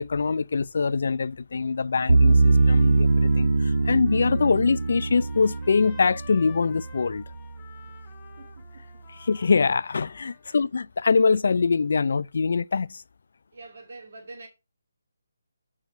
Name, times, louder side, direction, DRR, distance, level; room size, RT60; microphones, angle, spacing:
voice 1, 0.0-7.2 9.2-13.0, left 4 dB, 60° left, 0.4 m, -24 dB
Trumpet, 2.1-10.6, left 5 dB, 20° left, 1.6 m, -51 dB
sound 1, 2.1-7.2, right 3 dB, 90° right, 0.4 m, -22 dB
voice 2, 8.4-8.9 10.4-10.6 13.5-14.5, right 3 dB, 60° right, 2.3 m, -45 dB
7.8 x 4.9 x 6.4 m
figure-of-eight pair, 155°, 0 cm